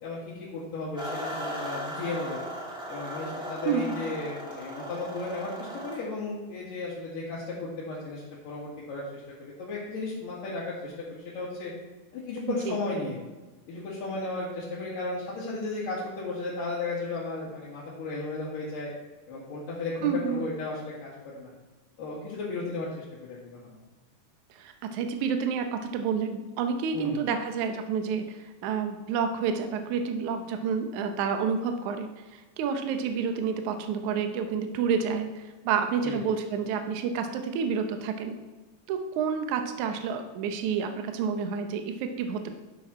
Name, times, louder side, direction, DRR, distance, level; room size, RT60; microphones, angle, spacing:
voice 1, 0.0-2.4 2.9-11.7 12.1-13.2 13.7-18.9 19.3-21.5 22.0-23.8 26.9-27.2 36.0-36.2, left 3 dB, 75° left, -9 dB, 3.8 m, -35 dB
sound 1, 1.0-6.0, right 1 dB, ahead, 1.0 m, -37 dB
voice 2, 3.7-4.0 12.5-12.8 20.0-20.4 24.6-38.4 38.9-42.5, right 6 dB, 70° right, 6 dB, 2.1 m, -29 dB
11.5 x 6.3 x 4.2 m, 1.2 s
omnidirectional pair, 3.8 m